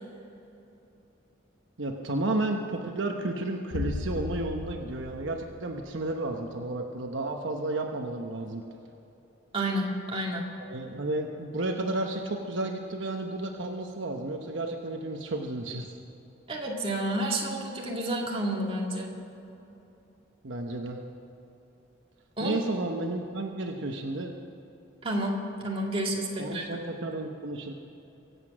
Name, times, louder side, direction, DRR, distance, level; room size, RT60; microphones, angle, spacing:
voice 1, 1.8-8.6 10.7-15.9 20.4-21.0 22.4-24.4 26.4-27.7, right 2 dB, 70° right, 3 dB, 1.0 m, -32 dB
sound 1, 3.7-6.3, left 3 dB, 65° left, 0.6 m, -36 dB
voice 2, 9.5-10.4 16.5-19.1 22.4-22.6 25.0-26.7, right 1 dB, 30° right, -2 dB, 2.2 m, -30 dB
24.0 x 8.2 x 6.2 m, 3.0 s
head